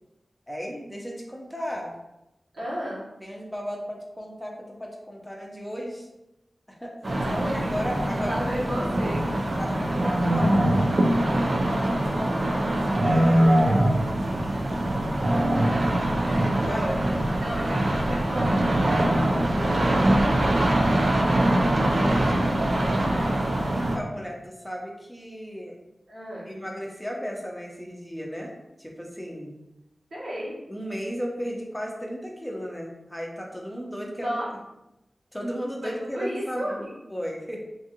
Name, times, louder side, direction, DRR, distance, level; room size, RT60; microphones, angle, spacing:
voice 1, 0.5-1.9 3.2-6.1 6.7-6.9 7.5-8.7 9.6-10.7 11.5-14.8 16.2-17.0 22.1-22.5 23.1-23.3 23.7-25.8 26.5-28.5 28.8-29.6 30.7-34.4 35.3-37.6, equal, 10° left, -1 dB, 0.7 m, -35 dB
voice 2, 2.5-3.0 7.1-7.9 8.2-10.2 11.4-11.7 15.4-15.8 16.2-22.3 23.0-23.3 26.1-26.5 30.1-30.6 34.2-34.5 35.8-37.0, equal, 90° right, -8 dB, 1.1 m, -35 dB
sound 1, 7.0-24.0, right 1 dB, 60° right, 0.4 m, -23 dB
2.6 x 2.4 x 2.8 m, 0.92 s
cardioid pair, 45°, 0 cm